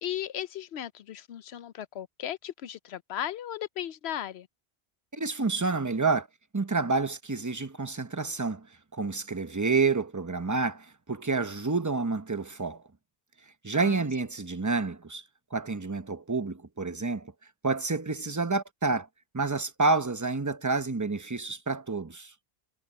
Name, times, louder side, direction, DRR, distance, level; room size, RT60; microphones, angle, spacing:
voice 1, 0.0-4.5 13.7-14.1, left 11 dB, 80° left, 0.9 m, -36 dB
voice 2, 5.1-6.3 6.5-8.7 8.9-12.8 13.6-15.2 15.5-17.3 17.6-19.1 19.3-22.3, right 3 dB, 20° right, 0.8 m, -29 dB
omnidirectional pair, 1.1 m